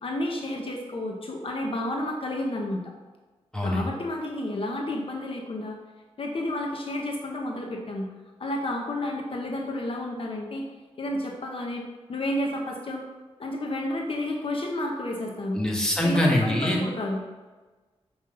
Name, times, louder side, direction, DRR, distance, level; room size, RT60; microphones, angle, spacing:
voice 1, 0.0-2.8 3.6-5.8 6.2-8.1 8.4-10.6 11.0-13.0 13.4-15.6 16.0-17.2, left 1 dB, 55° left, 1 dB, 1.0 m, -31 dB
voice 2, 3.5-3.9 15.5-16.8, left 1 dB, 5° left, -2 dB, 1.6 m, -23 dB
7.2 x 5.7 x 3.9 m, 1.3 s
wide cardioid pair, 105°, 11 cm